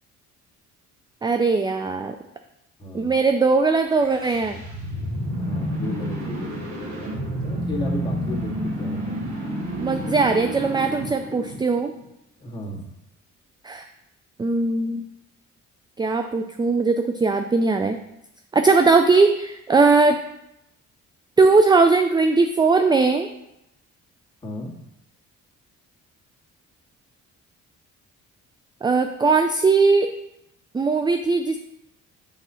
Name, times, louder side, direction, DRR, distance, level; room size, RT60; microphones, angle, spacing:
voice 1, 1.2-2.1 2.9-4.6 9.8-11.9 13.6-13.9 14.4-15.0 16.0-18.0 18.5-20.2 21.4-23.3 28.8-30.1 30.7-31.6, right 4 dB, 15° right, 7 dB, 0.4 m, -19 dB
voice 2, 2.8-3.1 5.4-6.6 7.4-9.2 12.4-12.9 24.4-24.7, left 1 dB, 15° left, -3 dB, 2.0 m, -34 dB
sound 1, 3.9-12.0, equal, 70° right, 2.3 m, -29 dB
6.0 x 4.1 x 5.6 m, 0.84 s
cardioid pair, 90°, 30 cm